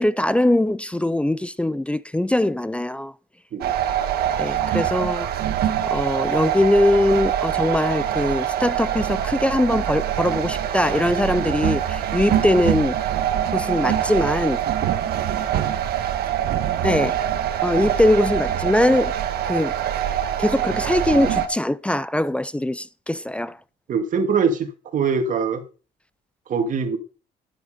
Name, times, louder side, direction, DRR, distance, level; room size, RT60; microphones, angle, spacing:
voice 1, 0.0-3.1 4.4-5.3 5.9-13.0 13.5-14.6 16.8-17.2 17.6-19.1 19.4-19.7 20.4-23.6, left 1 dB, 5° left, 0.4 m, -21 dB
sound 1, 3.6-21.5, right 10 dB, 65° right, 1.4 m, -24 dB
voice 2, 23.9-25.6 26.5-27.0, right 5 dB, 50° right, 2.2 m, -22 dB
10.0 x 8.0 x 5.1 m
cardioid pair, 110°, 17 cm